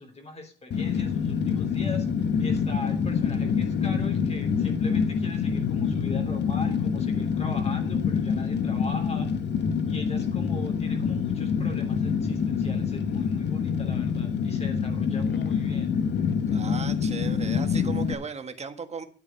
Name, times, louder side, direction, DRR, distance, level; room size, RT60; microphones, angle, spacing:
voice 1, 0.0-2.1 2.4-9.3 9.9-16.0, left 2 dB, 30° left, 3.3 m, -41 dB
Fire, 0.7-18.1, left 6 dB, 60° left, 1.2 m, -26 dB
voice 2, 16.5-19.0, right 5 dB, 35° right, 1.6 m, -36 dB
9.8 x 8.2 x 5.8 m
cardioid pair, 90°, 20 cm